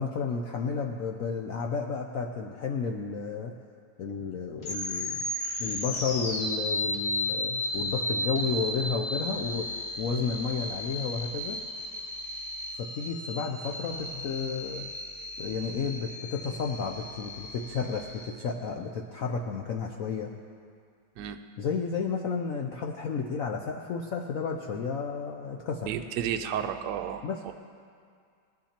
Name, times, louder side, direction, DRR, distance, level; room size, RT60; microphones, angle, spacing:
voice 1, 0.0-3.5 4.0-5.3 5.6-9.7 10.0-11.6 12.8-14.9 15.4-20.3 21.6-25.9 27.2-27.5, left 5 dB, 80° left, 2 dB, 0.7 m, -32 dB
sound 1, 4.6-18.3, left 1 dB, 55° left, 1.7 m, -34 dB
voice 2, 25.8-27.5, right 9 dB, 70° right, 6 dB, 1.1 m, -32 dB
19.5 x 10.0 x 2.9 m, 2.2 s
omnidirectional pair, 2.1 m